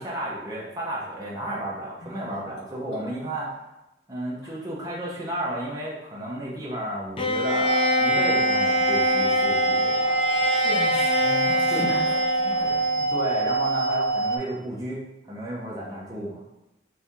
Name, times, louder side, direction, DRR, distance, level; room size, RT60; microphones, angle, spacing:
voice 1, 0.0-3.5 4.1-10.2 11.7-11.9 12.9-16.4, right 1 dB, 20° right, -6 dB, 0.8 m, -33 dB
voice 2, 2.0-2.4 2.9-3.0 4.4-4.5 10.6-12.8, left 2 dB, 85° left, -4 dB, 1.1 m, -36 dB
Bowed string instrument, 7.2-13.2, left 1 dB, 30° left, 0.4 m, -25 dB
sound 1, 7.7-14.4, right 3 dB, 90° right, 0.6 m, -25 dB
4.3 x 2.7 x 3.6 m, 0.95 s
head